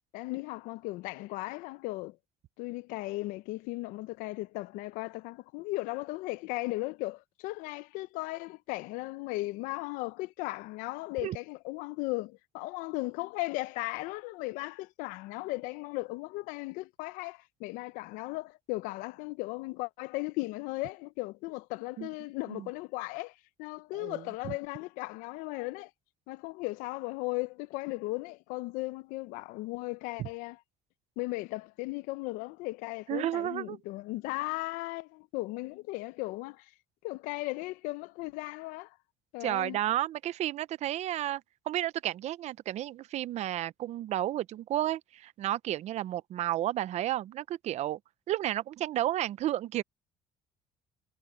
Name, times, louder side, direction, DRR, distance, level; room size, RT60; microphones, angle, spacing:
voice 1, 0.1-2.2 2.6-25.9 26.3-30.6 31.2-36.7 37.0-38.9 39.3-39.8, left 21 dB, 90° left, 0.7 m, -36 dB
voice 2, 23.9-24.5 30.2-30.3 33.1-33.8 39.4-48.0 48.3-49.8, right 13 dB, 55° right, 0.6 m, -32 dB
cardioid pair, 120°, 14 cm